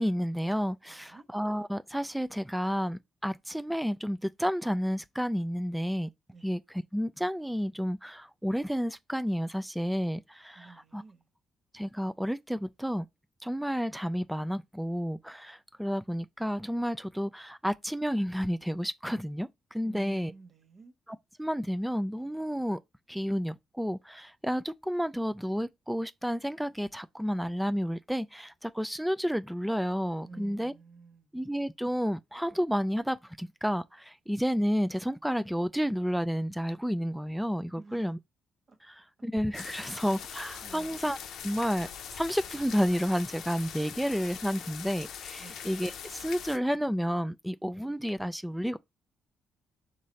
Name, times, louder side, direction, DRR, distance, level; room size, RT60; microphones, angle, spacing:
voice 1, 0.0-6.1 6.4-11.0 11.7-13.1 13.4-20.3 21.4-22.8 23.1-30.7 31.3-38.2 38.8-41.2 41.4-41.9 42.1-48.8, equal, ahead, 0.3 m, -31 dB
voice 2, 0.9-1.3 6.3-6.5 10.6-11.3 19.8-20.9 30.2-31.3 37.7-38.1 38.7-38.8 39.7-39.9 40.3-41.0 45.4-45.6, right 4 dB, 45° right, 1.1 m, -51 dB
sound 1, 39.5-46.6, left 8 dB, 75° left, 0.7 m, -42 dB
3.9 x 3.1 x 4.0 m
cardioid pair, 90°, 0 cm